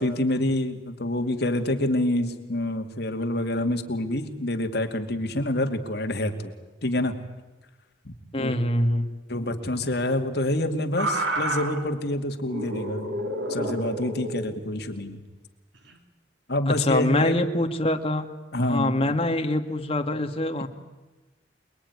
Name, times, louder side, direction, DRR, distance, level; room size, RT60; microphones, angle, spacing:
voice 1, 0.0-6.3 6.8-7.1 8.0-8.5 9.3-15.2 16.5-17.3 18.5-19.1, left 1 dB, 60° left, 5 dB, 2.5 m, -27 dB
voice 2, 8.3-9.2 16.7-18.3 18.6-20.7, left 1 dB, 30° left, 5 dB, 2.0 m, -24 dB
sound 1, 11.0-11.8 12.4-14.5 15.7-16.0, right 1 dB, 70° right, 3.2 m, -30 dB
28.0 x 21.0 x 9.7 m, 1.1 s
head